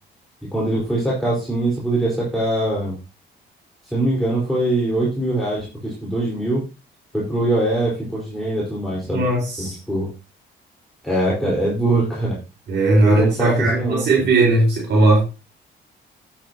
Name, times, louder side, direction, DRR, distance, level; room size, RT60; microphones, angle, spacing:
voice 1, 0.5-3.0 3.9-6.6 7.1-9.3 9.6-10.1 11.0-12.3 13.0-14.1, right 1 dB, ahead, -6 dB, 4.4 m, -22 dB
voice 2, 9.1-9.8 12.7-15.2, right 2 dB, 60° right, -3 dB, 4.8 m, -17 dB
9.9 x 9.0 x 2.9 m, 0.30 s
cardioid pair, 90°, 20 cm